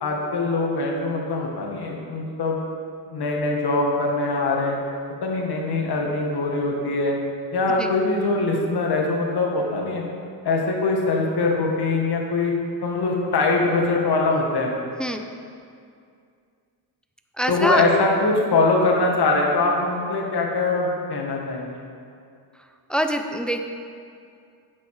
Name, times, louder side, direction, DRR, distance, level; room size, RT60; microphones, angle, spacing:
voice 1, 0.0-2.6 3.1-4.8 5.2-7.2 7.5-10.0 10.4-12.5 12.8-14.7 17.5-21.8, left 3 dB, 60° left, 0 dB, 1.8 m, -22 dB
voice 2, 15.0-15.3 17.4-17.9 22.9-23.6, right 1 dB, ahead, 5 dB, 0.6 m, -24 dB
9.4 x 7.7 x 4.9 m, 2.4 s
cardioid pair, 95°, 44 cm